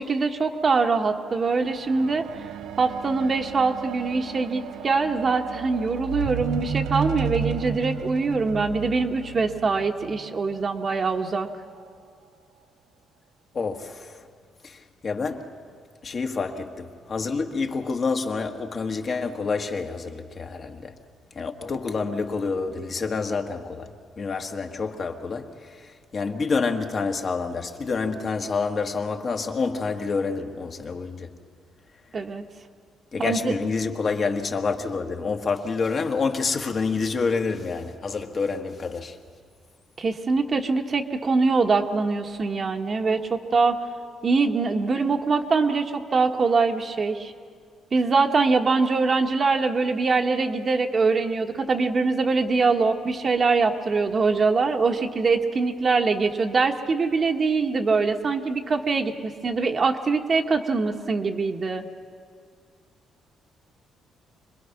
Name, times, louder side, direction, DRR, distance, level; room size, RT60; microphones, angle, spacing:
voice 1, 0.0-2.3 2.8-11.5 32.1-32.4 33.2-33.5 40.0-43.8 44.2-47.3 47.9-61.8, right 4 dB, 40° right, 1.3 m, -23 dB
sound 1, 1.5-11.0 11.8-11.9, right 6 dB, 85° right, 0.6 m, -33 dB
voice 2, 13.5-14.2 14.6-15.5 16.0-20.9 21.3-23.9 24.2-31.3 33.1-39.2, left 4 dB, 45° left, 1.5 m, -28 dB
26.0 x 20.5 x 5.9 m
cardioid pair, 90°, 0 cm